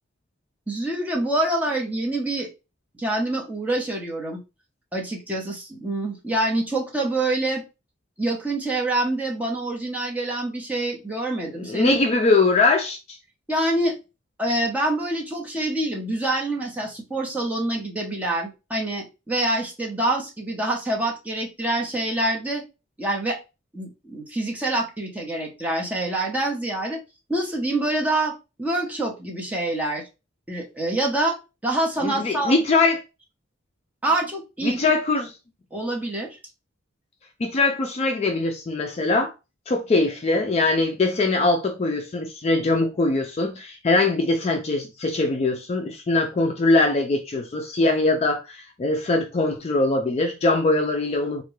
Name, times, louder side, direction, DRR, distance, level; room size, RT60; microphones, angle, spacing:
voice 1, 0.7-2.5 2.9-4.4 4.9-7.6 8.2-12.0 13.5-13.9 14.4-22.6 23.0-23.4 23.7-27.0 27.3-30.0 30.5-31.4 31.6-32.6 34.0-34.8 35.7-36.4, right 1 dB, 10° right, 0.8 m, -26 dB
voice 2, 11.6-13.0 32.0-33.0 34.6-35.3 37.4-39.3 39.7-51.4, left 3 dB, 35° left, 0.3 m, -22 dB
3.6 x 2.2 x 3.0 m
head